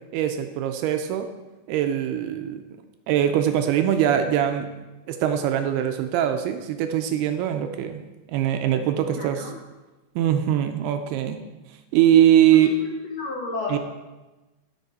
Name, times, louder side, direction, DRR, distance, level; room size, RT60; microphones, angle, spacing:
voice 1, 0.1-1.3 1.7-2.6 3.1-4.7 5.1-8.0 8.3-9.5 10.2-11.4 11.9-12.7 13.7-13.8, right 10 dB, 80° right, 7 dB, 2.4 m, -22 dB
voice 2, 9.0-9.5 12.5-13.8, left 3 dB, 75° left, -2 dB, 1.5 m, -33 dB
14.5 x 7.0 x 4.2 m, 1.1 s
omnidirectional pair, 4.9 m